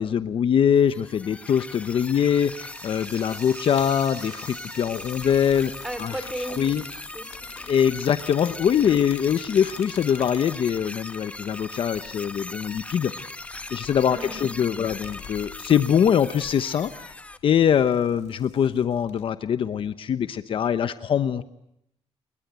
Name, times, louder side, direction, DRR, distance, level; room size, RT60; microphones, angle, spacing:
voice 1, 0.0-5.7 6.0-6.1 6.6-6.8 7.7-13.3 13.7-17.1 17.4-21.4, left 8 dB, 50° left, 12 dB, 1.0 m, -23 dB
sound 1, 0.7-17.4, left 2 dB, 10° left, 1.2 m, -39 dB
sound 2, 1.5-19.2, left 9 dB, 85° left, 3.4 m, -49 dB
sound 3, 2.2-8.3, right 5 dB, 35° right, 2.2 m, -50 dB
voice 2, 5.8-7.7 14.1-14.6, right 1 dB, 5° right, 10 dB, 3.5 m, -36 dB
29.5 x 22.5 x 8.2 m, 0.77 s
wide cardioid pair, 175°, 11 cm